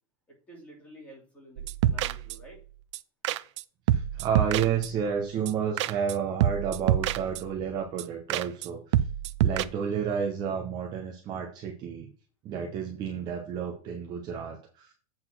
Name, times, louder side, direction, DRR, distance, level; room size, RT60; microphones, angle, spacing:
voice 1, 0.5-2.6, right 1 dB, 5° left, -2 dB, 2.7 m, -50 dB
sound 1, 1.6-2.6 2.9-3.0 3.2-3.6 3.9-5.1 5.5-5.6 5.8-6.1 6.4-7.6 8.0-8.1 8.3-8.7 8.9-9.6, right 11 dB, 50° right, 0.5 m, -27 dB
voice 2, 3.9-9.1 9.4-12.1 12.4-14.9, right 7 dB, 20° right, 1 dB, 0.9 m, -31 dB
7.9 x 4.4 x 6.1 m, 0.41 s
supercardioid pair, 180°, 19 cm